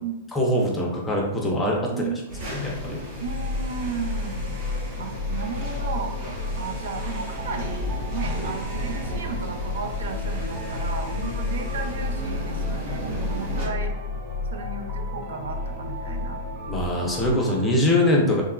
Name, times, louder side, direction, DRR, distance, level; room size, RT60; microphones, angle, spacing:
voice 1, 0.3-2.0 2.5-3.0 16.7-18.4, left 1 dB, 10° left, -2 dB, 0.4 m, -23 dB
voice 2, 1.9-2.4 3.2-4.5 5.0-6.2 6.6-13.9 14.5-16.4, right 5 dB, 85° right, 5 dB, 0.4 m, -34 dB
sound 1, 2.3-13.7, equal, 40° right, 1.1 m, -34 dB
sound 2, 3.2-17.3, left 3 dB, 80° left, 0.4 m, -32 dB
sound 3, 5.0-17.7, right 2 dB, 25° right, 0.7 m, -42 dB
2.8 x 2.3 x 2.2 m, 0.98 s
supercardioid pair, 165°, 0 cm